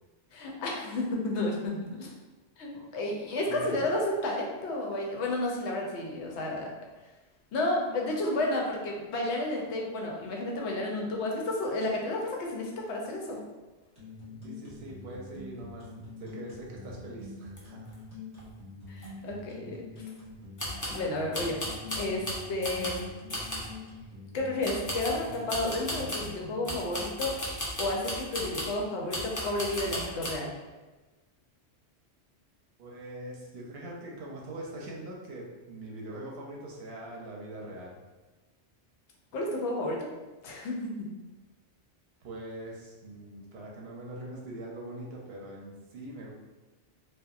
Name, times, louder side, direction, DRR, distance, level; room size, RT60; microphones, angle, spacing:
voice 1, 0.3-2.1 2.6-6.7 7.5-13.4 18.9-19.9 20.9-21.6 21.9-23.1 24.3-27.4 27.8-30.6 39.3-40.1 40.4-40.9, left 2 dB, 80° left, -1 dB, 0.9 m, -31 dB
voice 2, 3.5-3.9 14.3-17.9 32.8-38.0 42.2-46.3, right 1 dB, 70° right, -2 dB, 0.8 m, -42 dB
sound 1, 13.9-26.8, left 3 dB, 20° right, 1.2 m, -45 dB
sound 2, 17.6-17.7 17.8-17.9 18.4-18.5 19.0-19.1 20.6-21.0 21.3-23.0 23.3-23.7 24.6-26.3 26.6-28.8 29.1-30.3, equal, 25° left, 0.4 m, -35 dB
2.8 x 2.2 x 2.4 m, 1.2 s
omnidirectional pair, 1.2 m